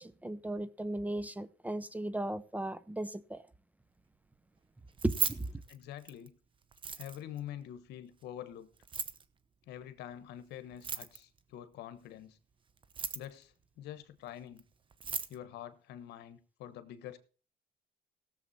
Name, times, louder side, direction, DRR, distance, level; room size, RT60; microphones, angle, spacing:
voice 1, 0.0-3.4 5.0-5.4, right 1 dB, 10° right, 0.6 m, -36 dB
Keys jangling, 4.9-6.3 6.7-7.4 8.8-9.2 10.7-11.4 12.8-13.4 14.6-14.7 14.9-15.4, right 6 dB, 30° right, 0.9 m, -37 dB
voice 2, 5.7-6.3 7.0-8.7 9.7-12.4 13.1-14.6 15.3-17.2, left 11 dB, 80° left, 1.3 m, -46 dB
17.0 x 7.3 x 4.2 m
cardioid pair, 110°, 17 cm